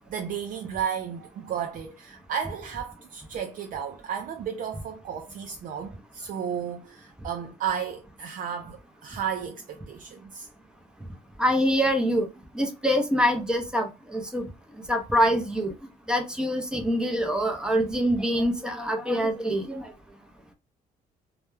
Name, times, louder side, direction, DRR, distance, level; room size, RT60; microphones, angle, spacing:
voice 1, 0.1-10.5 19.7-19.8, right 8 dB, 55° right, 0.4 m, -33 dB
voice 2, 11.4-12.3 12.5-14.5 14.9-15.7 16.1-19.9, equal, 5° right, 0.6 m, -25 dB
2.2 x 2.1 x 3.1 m
cardioid pair, 110°, 17 cm